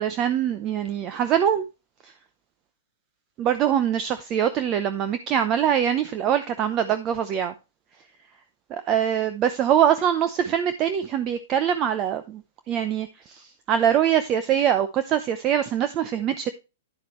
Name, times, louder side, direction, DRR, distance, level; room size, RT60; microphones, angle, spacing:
voice 1, 0.0-1.6 2.0-2.1 3.4-7.5 8.7-12.4 12.7-16.5, right 9 dB, 25° right, 0.7 m, -23 dB
10.5 x 7.4 x 3.1 m
hypercardioid pair, 150°, 0 cm